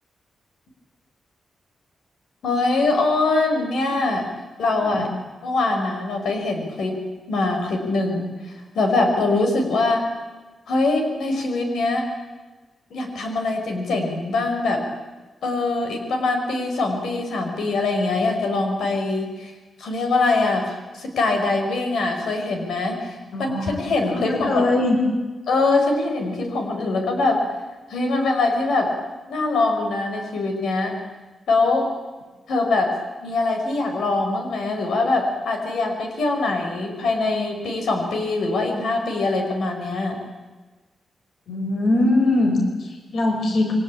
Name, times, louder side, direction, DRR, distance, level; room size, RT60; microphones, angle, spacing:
voice 1, 2.4-4.3 4.6-5.1 5.4-7.0 7.3-8.3 8.8-10.0 10.7-12.1 12.9-14.8 15.4-19.5 19.8-24.7 25.5-27.4 27.9-28.9 29.3-31.0 31.5-31.9 32.5-33.0 33.2-40.2, left 3 dB, 80° left, 4 dB, 5.4 m, -23 dB
voice 2, 23.3-23.8 24.1-25.0 41.5-43.7, left 2 dB, 65° left, 3 dB, 5.1 m, -21 dB
28.5 x 24.0 x 8.7 m, 1.3 s
wide cardioid pair, 170°, 0 cm